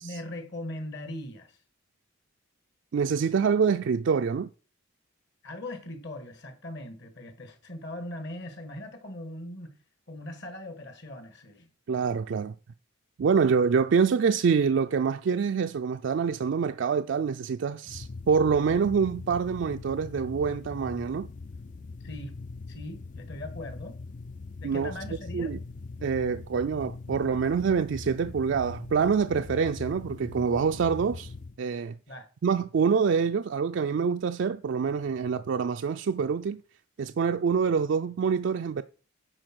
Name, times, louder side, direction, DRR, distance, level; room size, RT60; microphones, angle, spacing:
voice 1, 0.0-1.6 5.4-9.8 10.1-11.7 22.0-22.3 22.7-24.0 24.6-25.6 32.1-32.3, left 1 dB, 55° left, 1.6 m, -40 dB
voice 2, 2.9-4.5 11.9-12.5 13.2-21.3 24.6-24.9 25.3-25.6 26.0-31.3 31.6-32.0 32.4-36.6 37.0-38.8, right 6 dB, 60° right, 0.3 m, -26 dB
sound 1, 17.9-31.6, left 3 dB, 35° left, 0.3 m, -41 dB
9.8 x 4.4 x 6.1 m
head